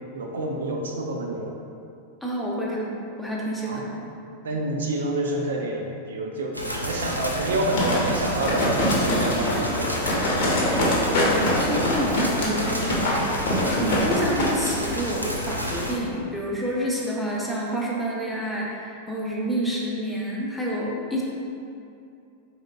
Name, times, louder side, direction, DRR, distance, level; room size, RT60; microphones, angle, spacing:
voice 1, 0.1-1.6 3.7-3.9 4.4-10.0, right 2 dB, 65° right, 0 dB, 0.4 m, -28 dB
voice 2, 2.2-4.1 11.0-13.3 13.7-21.2, equal, 5° left, -5 dB, 0.6 m, -29 dB
sound 1, 6.5-16.0, equal, 90° left, 0.4 m, -30 dB
sound 2, 7.8-14.5 14.9-15.0, left 1 dB, 50° left, 0.7 m, -24 dB
4.0 x 3.6 x 2.3 m, 2.6 s
figure-of-eight pair, 90°, 0 cm